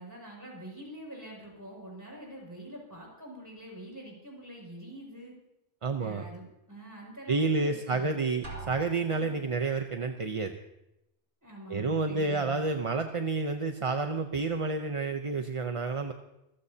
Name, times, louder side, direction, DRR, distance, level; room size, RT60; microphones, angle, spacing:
voice 1, 0.0-5.3 6.0-8.2 11.4-12.6, right 1 dB, 15° right, -2 dB, 6.4 m, -45 dB
voice 2, 5.8-6.2 7.3-10.6 11.7-16.1, right 3 dB, 35° right, 5 dB, 0.7 m, -30 dB
Drum, 8.4-9.6, right 3 dB, 65° right, 3.4 m, -43 dB
26.0 x 15.5 x 2.8 m, 0.88 s
omnidirectional pair, 1.2 m